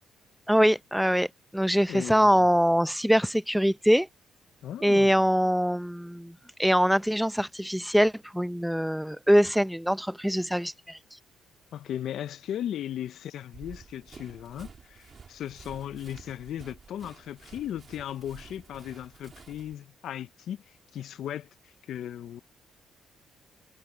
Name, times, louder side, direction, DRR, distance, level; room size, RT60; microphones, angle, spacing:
voice 1, 0.5-1.3 1.5-4.1 4.8-6.3 6.6-11.0, equal, ahead, 0.7 m, -23 dB
voice 2, 1.9-2.5 4.6-5.3 11.7-20.6 20.9-22.4, left 11 dB, 70° left, 0.7 m, -37 dB
Run, 13.5-19.7, right 5 dB, 40° right, 3.5 m, -50 dB
cardioid pair, 90°, 0 cm